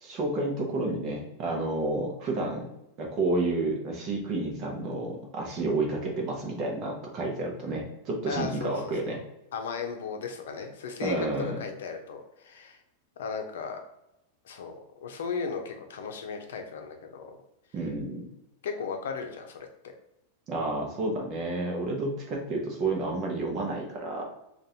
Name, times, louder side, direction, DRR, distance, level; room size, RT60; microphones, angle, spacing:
voice 1, 0.0-2.7 3.0-9.2 11.0-11.6 17.7-18.3 20.5-24.2, right 2 dB, 25° right, 0 dB, 0.8 m, -30 dB
voice 2, 8.3-9.2 9.5-12.8 13.2-13.8 14.4-17.3 18.6-19.9, left 5 dB, 80° left, 4 dB, 0.7 m, -36 dB
5.2 x 2.5 x 2.8 m, 0.86 s
supercardioid pair, 180°, 0 cm